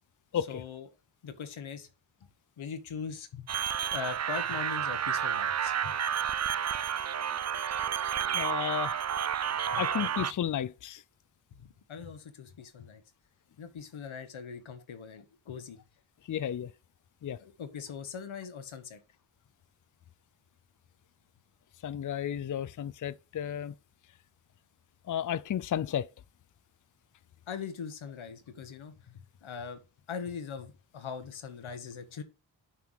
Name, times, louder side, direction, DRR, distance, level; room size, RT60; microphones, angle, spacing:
voice 1, 0.5-0.9 1.2-1.9 2.2-2.3 2.6-3.5 3.9-6.0 9.7-9.8 11.6-13.0 13.6-15.8 17.4-19.0 27.5-29.8 30.1-32.2, left 6 dB, 90° left, 1.2 m, -41 dB
sound 1, 3.5-10.3, right 8 dB, 35° right, 0.4 m, -31 dB
voice 2, 8.3-9.0 9.8-11.0 16.3-16.7 17.2-17.4 21.8-23.7 25.1-26.1, left 10 dB, 45° left, 0.5 m, -33 dB
5.9 x 5.7 x 4.7 m
cardioid pair, 45°, 46 cm